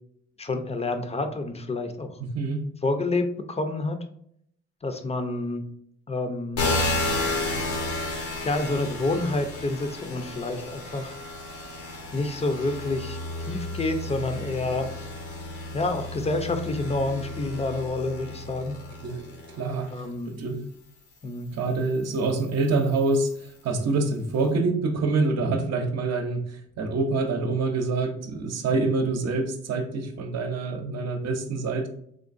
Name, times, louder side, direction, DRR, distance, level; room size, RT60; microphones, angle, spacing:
voice 1, 0.4-2.2 2.8-4.0 4.8-5.6 6.1-6.7 8.4-11.1 12.1-13.2 13.5-14.9 15.7-18.8 19.9-20.4 21.2-21.5, left 2 dB, 20° left, 7 dB, 0.5 m, -28 dB
voice 2, 2.2-2.6 19.0-19.2 19.5-19.9 20.3-20.6 21.5-31.9, right 3 dB, 55° right, 6 dB, 0.7 m, -26 dB
sound 1, 6.5-19.9 20.6-23.6, left 2 dB, 90° left, 1.2 m, -33 dB
3.8 x 3.2 x 2.5 m, 0.70 s
cardioid pair, 90°, 30 cm